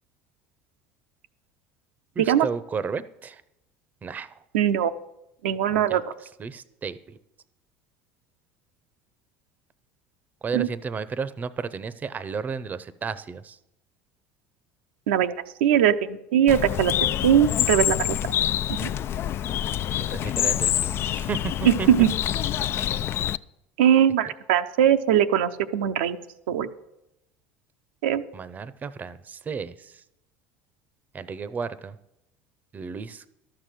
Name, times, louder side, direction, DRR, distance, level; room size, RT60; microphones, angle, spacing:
voice 1, 2.2-3.4 4.0-4.3 5.9-6.0 6.4-7.2 10.4-13.6 20.1-21.9 28.3-29.9 31.1-32.0 32.7-33.2, right 5 dB, 30° right, 15 dB, 0.7 m, -33 dB
voice 2, 4.5-4.9 5.4-6.0 10.5-10.7 15.1-15.3 15.6-16.9 17.2-18.2 18.7-18.9 21.7-22.1 23.8-26.2 26.5-26.7 28.0-28.2, right 10 dB, 85° right, 8 dB, 0.7 m, -20 dB
Bird, 16.5-23.4, left 11 dB, 45° left, 0.4 m, -26 dB
12.0 x 6.8 x 7.7 m, 0.86 s
hypercardioid pair, 85°, 6 cm